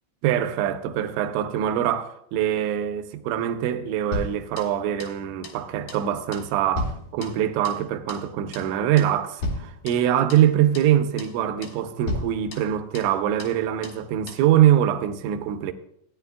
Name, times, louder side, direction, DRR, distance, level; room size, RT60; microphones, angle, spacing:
voice 1, 0.2-15.7, right 11 dB, 85° right, 2.7 m, -23 dB
sound 1, 4.1-5.2 5.4-5.6 5.9-6.1 6.3-7.8 8.1-8.3 8.5-8.7 9.0-9.2 9.4-10.5 10.7-10.9 11.2-11.4 11.6-11.8 12.1-13.1 13.4-13.6 13.8-14.0 14.3-14.5, left 1 dB, 65° left, 2.4 m, -34 dB
16.5 x 9.7 x 2.3 m
omnidirectional pair, 5.8 m